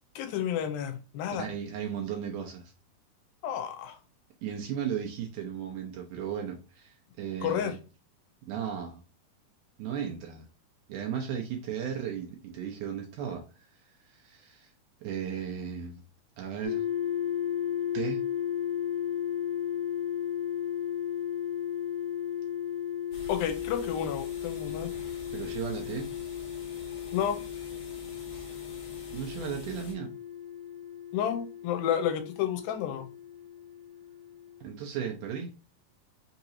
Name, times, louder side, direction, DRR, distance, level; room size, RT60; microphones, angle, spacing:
voice 1, 0.2-1.5 3.4-4.0 7.4-7.8 23.3-24.9 27.1-27.4 31.1-33.1, left 9 dB, 90° left, 7 dB, 2.4 m, -31 dB
voice 2, 1.3-2.7 4.4-7.7 8.5-9.0 9.8-10.5 10.9-13.4 14.0-14.7 15.0-16.0 16.4-16.8 17.9-18.2 25.3-26.1 29.1-30.1 34.6-35.5, right 8 dB, 75° right, 1 dB, 1.9 m, -35 dB
sound 1, 16.6-34.6, left 10 dB, 25° left, 0.8 m, -35 dB
sound 2, 23.1-29.9, left 3 dB, 60° left, 2.2 m, -46 dB
5.6 x 2.9 x 2.7 m, 0.33 s
omnidirectional pair, 4.2 m